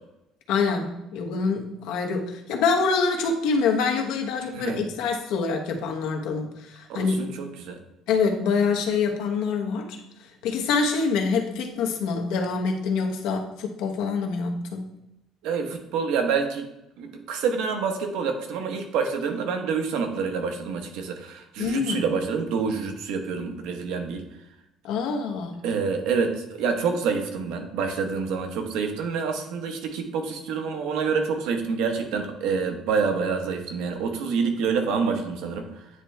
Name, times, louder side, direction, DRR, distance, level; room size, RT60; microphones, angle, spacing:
voice 1, 0.5-7.4 8.1-10.0 10.4-14.9 21.6-22.1 24.8-25.5, left 5 dB, 75° left, 3 dB, 1.0 m, -25 dB
voice 2, 6.9-7.8 15.4-16.7 17.0-24.2 25.6-35.7, right 5 dB, 75° right, 5 dB, 1.0 m, -27 dB
9.6 x 3.4 x 3.2 m, 0.87 s
cardioid pair, 175°, 0 cm